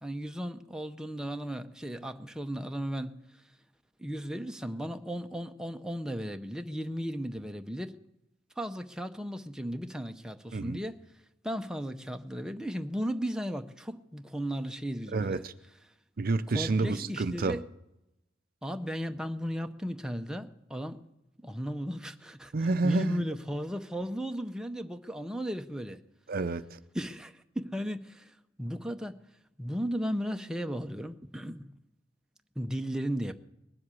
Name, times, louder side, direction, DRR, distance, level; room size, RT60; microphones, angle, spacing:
voice 1, 0.0-3.2 4.0-8.0 8.6-11.0 11.4-15.4 16.5-17.7 18.6-21.0 21.4-22.5 22.8-26.0 26.9-29.2 29.6-31.7 32.6-33.3, equal, 5° right, 0.7 m, -35 dB
voice 2, 15.1-15.5 16.2-17.6 22.5-23.2 26.3-26.8, right 3 dB, 50° right, 0.6 m, -29 dB
20.0 x 7.8 x 8.5 m
head